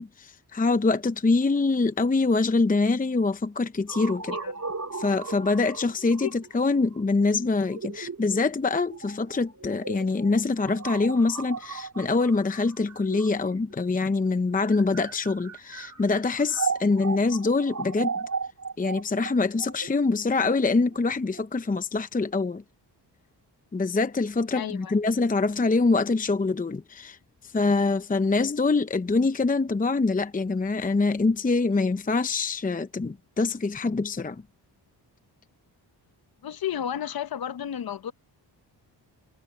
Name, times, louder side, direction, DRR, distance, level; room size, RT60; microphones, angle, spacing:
voice 1, 0.0-4.4 4.9-18.2 18.8-22.6 23.7-27.2 27.4-34.4, left 3 dB, 20° left, 0.8 m, -24 dB
sound 1, 3.9-13.7 14.5-21.4, right 5 dB, 40° right, 3.5 m, -36 dB
voice 2, 24.5-24.9 36.4-38.1, left 10 dB, 55° left, 0.9 m, -32 dB
cardioid pair, 75°, 43 cm